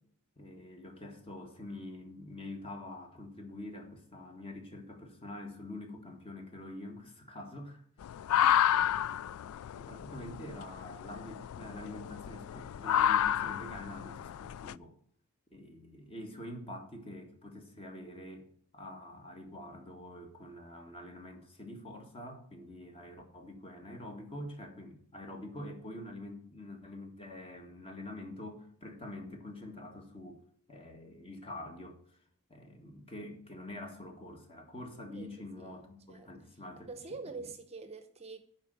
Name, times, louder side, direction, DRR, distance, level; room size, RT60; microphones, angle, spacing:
voice 1, 0.4-8.1 8.8-9.2 9.7-14.9 15.5-18.5 18.7-30.4 30.7-32.0 32.5-36.9 37.3-37.5, left 1 dB, 25° left, 1.8 m, -46 dB
sound 1, 8.0-14.7, left 10 dB, 80° left, 0.3 m, -31 dB
voice 2, 35.1-35.8 36.1-36.3 36.8-38.4, right 3 dB, 30° right, 0.8 m, -46 dB
10.5 x 4.5 x 6.7 m
head